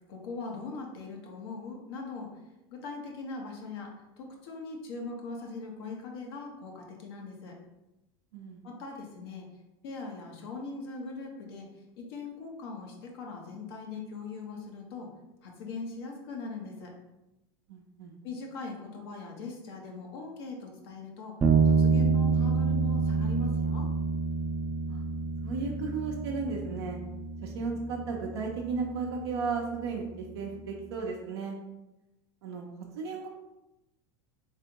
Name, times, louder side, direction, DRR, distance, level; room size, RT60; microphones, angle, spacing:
voice 1, 0.1-2.3 2.7-7.6 8.6-9.5 9.8-11.7 12.0-15.1 15.4-16.9 18.2-21.4 21.6-23.9, left 4 dB, 75° left, 0 dB, 1.0 m, -40 dB
voice 2, 8.3-8.6 17.7-18.2 24.9-25.0 25.4-27.0 27.4-31.6 32.4-32.7 33.0-33.3, right 5 dB, 80° right, -2 dB, 0.7 m, -34 dB
sound 1, 21.4-30.9, right 4 dB, 20° right, 0.5 m, -29 dB
3.4 x 3.3 x 2.9 m, 0.97 s
supercardioid pair, 110°, 13 cm